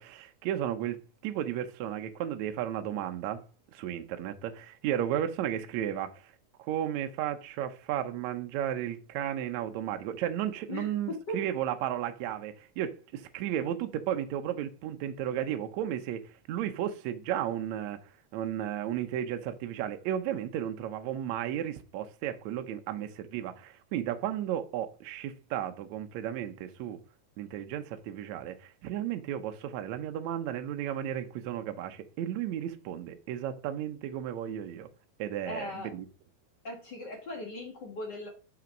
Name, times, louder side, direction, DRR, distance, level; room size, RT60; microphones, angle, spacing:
voice 1, 0.0-3.5 3.7-6.3 6.6-18.0 18.3-27.0 27.4-34.9 35.2-36.1, right 10 dB, 70° right, 1.8 m, -34 dB
voice 2, 10.7-11.4 22.9-23.0 35.5-35.9 36.6-38.3, left 2 dB, 45° left, 1.5 m, -39 dB
6.1 x 5.7 x 5.1 m
omnidirectional pair, 3.8 m